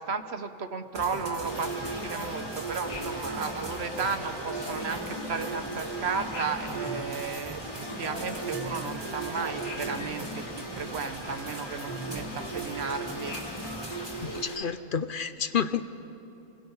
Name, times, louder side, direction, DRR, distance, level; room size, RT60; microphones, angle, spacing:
voice 1, 0.0-7.6 8.0-13.4, right 5 dB, 55° right, 8 dB, 1.2 m, -34 dB
sound 1, 0.9-14.4, right 2 dB, 20° right, 1.8 m, -36 dB
sound 2, 1.4-14.6, left 2 dB, 80° left, 2.5 m, -43 dB
voice 2, 14.2-15.8, left 7 dB, 50° left, 11 dB, 0.7 m, -30 dB
27.5 x 21.5 x 5.6 m, 2.8 s
omnidirectional pair, 1.3 m